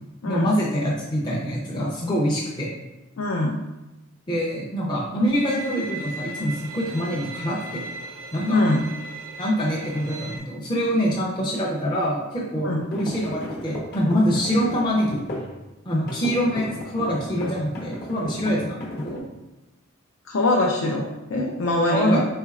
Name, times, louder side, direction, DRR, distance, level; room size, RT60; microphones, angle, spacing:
voice 1, 0.2-2.7 4.3-7.8 8.3-8.6 9.4-15.2 15.8-19.3 21.9-22.2, equal, 20° left, -5 dB, 0.5 m, -25 dB
voice 2, 3.2-3.6 8.5-8.9 12.6-12.8 20.3-22.2, left 2 dB, 70° left, -1 dB, 0.5 m, -23 dB
Bowed string instrument, 5.3-10.4, right 2 dB, 70° right, 0.5 m, -37 dB
sound 1, 12.8-15.6 16.1-19.2, left 1 dB, 50° left, 1.0 m, -35 dB
4.3 x 3.9 x 2.4 m, 1.0 s
head